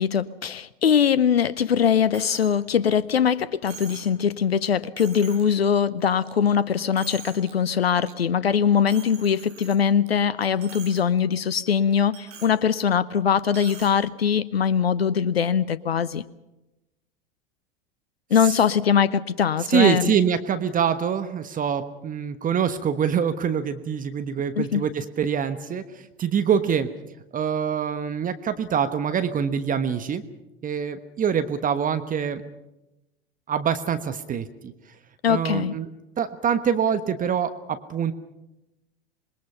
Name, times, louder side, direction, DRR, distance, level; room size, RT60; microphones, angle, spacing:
voice 1, 0.0-16.2 18.3-20.2 24.6-24.8 35.2-35.8, left 7 dB, 90° left, 18 dB, 0.7 m, -22 dB
Coin (dropping), 2.1-2.5 2.9-3.0 3.7-4.1 4.6-4.7 5.0-5.5 6.0-6.5 6.8-7.5 7.9-8.1 8.9-10.1 10.4-11.0 11.3-11.4 12.1-12.6 13.5-13.9, right 7 dB, 50° right, 7.3 m, -43 dB
voice 2, 19.7-26.9 27.3-30.2 30.6-32.4 33.5-34.7 35.3-35.9 36.2-38.1, right 7 dB, 25° right, 10 dB, 1.2 m, -25 dB
26.5 x 21.0 x 5.7 m, 0.96 s
hypercardioid pair, 85°, 30 cm